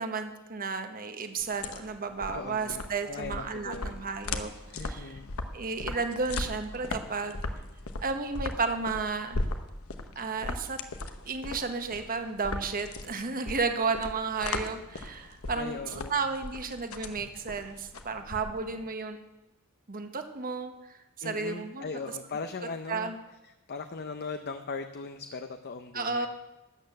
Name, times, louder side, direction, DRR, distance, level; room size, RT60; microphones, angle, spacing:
voice 1, 0.0-5.2 5.5-7.4 8.0-9.4 10.1-10.8 11.2-15.8 16.1-19.2 19.9-21.9 22.9-23.2 25.9-26.3, right 4 dB, 40° right, 7 dB, 1.1 m, -33 dB
sound 1, 1.4-18.8, left 2 dB, 70° left, 1.0 m, -38 dB
voice 2, 2.3-4.1 4.7-5.3 15.5-16.2 21.2-23.1 23.4-26.3, left 4 dB, 50° left, 8 dB, 0.6 m, -39 dB
13.0 x 8.9 x 6.5 m, 1.0 s
head